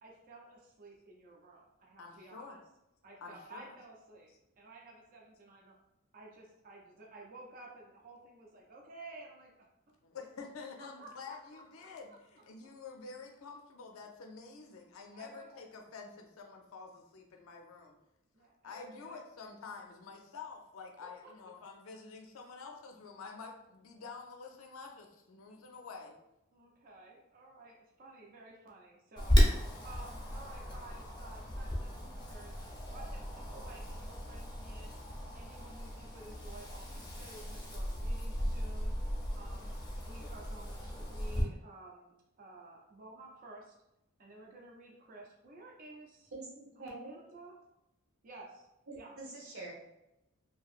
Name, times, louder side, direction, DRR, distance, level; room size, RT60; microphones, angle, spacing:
voice 1, 0.0-2.6 3.0-4.3 4.6-5.8 6.1-9.6 11.0-12.2 15.1-15.7 18.3-19.2 21.0-21.1 26.5-29.4 29.8-35.0 35.3-38.9 39.3-43.7 44.2-46.3 46.8-47.6 48.2-48.7 49.0-49.1, right 2 dB, 40° right, -2 dB, 0.5 m, -53 dB
voice 2, 2.0-2.6 3.2-3.7 10.0-18.0 18.6-26.2, left 4 dB, 80° left, 2 dB, 0.4 m, -48 dB
Wind, 29.2-41.4, equal, 20° left, 0.6 m, -34 dB
voice 3, 46.3-47.2 48.9-49.7, right 2 dB, 80° right, -3 dB, 1.0 m, -45 dB
2.9 x 2.6 x 2.4 m, 0.88 s
head